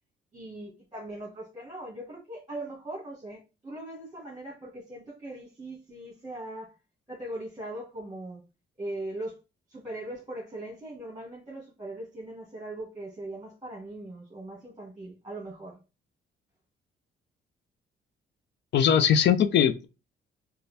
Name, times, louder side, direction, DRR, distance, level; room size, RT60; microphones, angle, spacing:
voice 1, 0.3-6.8 7.1-8.4 8.8-9.4 9.7-15.8, right 1 dB, 15° right, 1.5 m, -40 dB
voice 2, 18.7-19.9, left 8 dB, 65° left, 0.5 m, -21 dB
4.0 x 2.3 x 3.3 m
cardioid pair, 90°, 20 cm